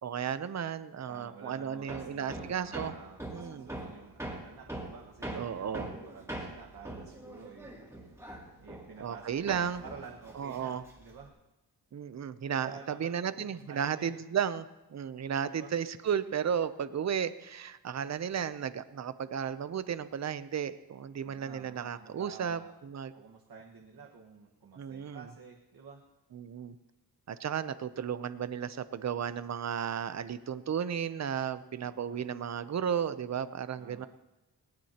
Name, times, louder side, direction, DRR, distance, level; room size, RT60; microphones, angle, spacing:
voice 1, 0.0-2.9 3.3-3.7 5.3-5.9 9.0-9.8 10.3-10.8 11.9-23.1 24.8-25.3 26.3-26.8 27.3-34.1, right 8 dB, 40° right, 13 dB, 0.6 m, -34 dB
voice 2, 1.1-4.2 4.4-8.1 8.6-11.3 12.5-13.0 13.3-14.2 15.5-15.7 21.2-22.7 23.1-26.0 31.8-32.2 33.8-34.1, right 5 dB, 60° right, -1 dB, 1.5 m, -50 dB
Hammer, 1.9-9.2 9.5-11.2, right 1 dB, 5° right, 2.6 m, -42 dB
19.0 x 18.5 x 2.9 m, 1.1 s
wide cardioid pair, 150°, 40 cm